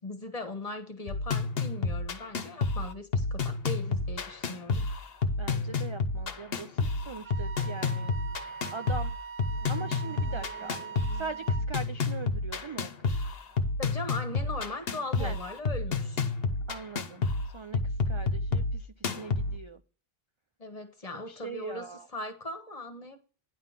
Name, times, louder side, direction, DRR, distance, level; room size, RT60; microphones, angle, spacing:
voice 1, 0.0-4.9 13.8-16.3 20.6-23.2, left 2 dB, 35° left, 1.4 m, -39 dB
sound 1, 1.1-19.6, left 3 dB, 70° left, 1.1 m, -30 dB
voice 2, 5.4-8.1 8.7-9.1 9.7-10.8 11.1-13.1 15.2-15.4 16.7-17.3 17.5-17.8 18.1-19.8 21.3-22.1, right 4 dB, 40° right, 0.4 m, -41 dB
Wind instrument woodwind instrument, 7.2-11.7, right 7 dB, 65° right, 0.8 m, -42 dB
sound 2, 9.4-13.1 13.5-13.6, right 2 dB, 20° right, 1.8 m, -53 dB
10.5 x 3.8 x 7.2 m
omnidirectional pair, 1.1 m